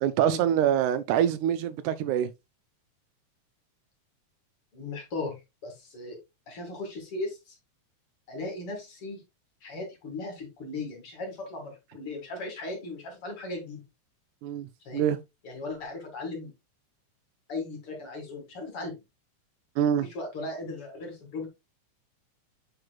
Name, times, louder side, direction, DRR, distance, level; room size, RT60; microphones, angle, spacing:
voice 1, 0.0-2.3 14.4-15.2 19.8-20.1, right 10 dB, 85° right, 2.0 m, -25 dB
voice 2, 4.7-6.2 6.5-7.6 8.3-9.2 9.6-13.8 14.8-15.1 15.4-16.5 17.5-19.0 20.0-21.5, left 2 dB, 50° left, 3.1 m, -37 dB
7.8 x 5.9 x 2.4 m
omnidirectional pair, 3.5 m